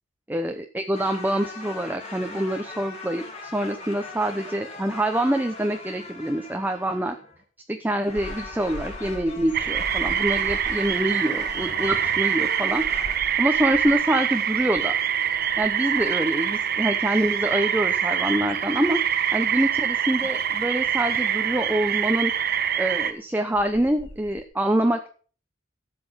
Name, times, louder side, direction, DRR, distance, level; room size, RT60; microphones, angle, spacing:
voice 1, 0.3-7.2 7.7-12.8 13.4-14.9 15.6-19.0 19.3-22.3 22.8-25.0, right 1 dB, 10° right, 6 dB, 0.8 m, -25 dB
sound 1, 0.9-7.4 8.0-13.2, left 3 dB, 35° left, 3.1 m, -40 dB
sound 2, 8.2-14.2 14.5-14.9 15.3-16.3 16.9-19.2 19.6-19.8 20.8-20.9 23.1-23.2 23.5-24.4, left 1 dB, 75° left, 1.3 m, -42 dB
sound 3, 9.5-23.1, right 9 dB, 55° right, 1.0 m, -25 dB
12.5 x 7.7 x 5.7 m, 0.41 s
head